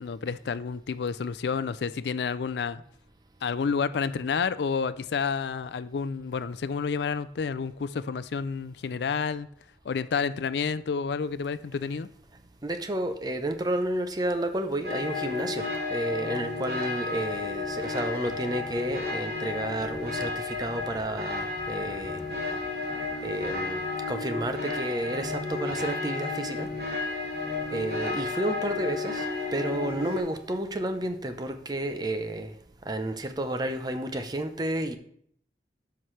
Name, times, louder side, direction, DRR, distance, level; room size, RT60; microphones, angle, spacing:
voice 1, 0.0-2.8 3.4-9.5 9.8-12.1, left 5 dB, 70° left, 0.4 m, -30 dB
voice 2, 12.6-22.2 23.2-26.7 27.7-32.5 32.9-35.0, right 1 dB, 20° right, 0.6 m, -31 dB
sound 1, 14.8-30.2, left 3 dB, 60° right, 2.9 m, -32 dB
12.5 x 5.8 x 3.2 m
head